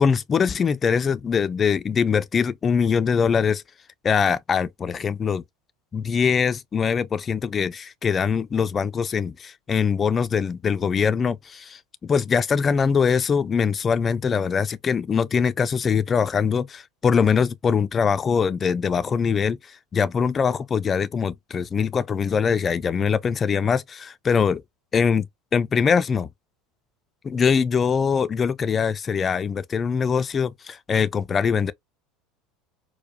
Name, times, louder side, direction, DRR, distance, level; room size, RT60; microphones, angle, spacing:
voice 1, 0.0-3.6 4.0-5.4 5.9-24.6 24.9-25.3 25.5-26.3 27.2-31.7, left 6 dB, 30° left, 0.3 m, -22 dB
4.5 x 2.0 x 2.2 m
hypercardioid pair, 75°, 0 cm